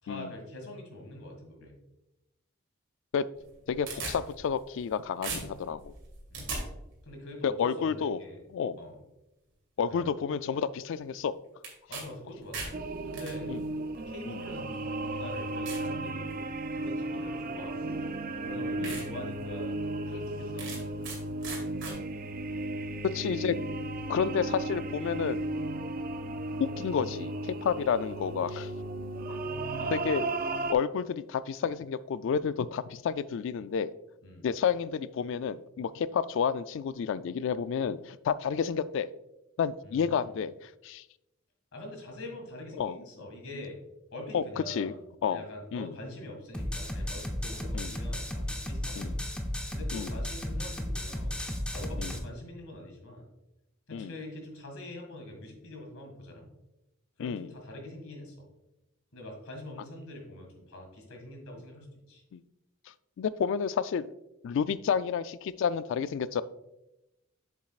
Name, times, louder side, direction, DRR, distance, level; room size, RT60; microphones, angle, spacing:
voice 1, 0.0-1.7 6.3-6.5 7.0-8.4 8.8-9.0 9.9-10.1 11.9-12.7 13.0-13.5 14.1-18.1 18.4-19.8 20.1-21.1 29.8-30.0 34.2-34.4 39.8-40.3 41.7-43.8 44.1-45.0 45.3-49.1 49.7-51.4 51.7-53.3 53.9-56.5 57.2-58.5 59.1-62.2, left 1 dB, 85° left, 2 dB, 2.0 m, -44 dB
sound 1, 3.4-4.9 5.2-6.6 11.6-12.0 12.3-13.3 14.2-14.3 14.9-15.0 15.7-15.9 16.4-16.7 17.9-18.0 18.4-18.5 18.8-19.0 19.5-19.6 20.6-21.2 21.4-21.9, right 4 dB, 60° right, 2.3 m, -38 dB
voice 2, 3.7-5.9 7.4-8.2 8.5-8.8 9.8-11.3 13.5-13.6 14.3-14.4 18.8-19.0 23.0-23.6 24.1-25.5 26.6-28.7 29.3-29.4 29.9-33.9 34.4-39.1 39.6-41.0 42.8-43.0 44.3-44.9 45.2-45.4 45.7-45.9 47.7-48.0 49.0-49.2 49.9-50.1 52.0-52.2 53.9-54.1 57.2-57.5 62.3-62.4 63.2-64.1 64.4-66.4, left 7 dB, 65° left, 16 dB, 0.3 m, -30 dB
sound 2, 12.7-30.7, right 2 dB, 45° right, 0.4 m, -35 dB
sound 3, 46.5-52.2, left 1 dB, 5° left, 0.7 m, -34 dB
7.4 x 7.2 x 2.4 m, 0.92 s
head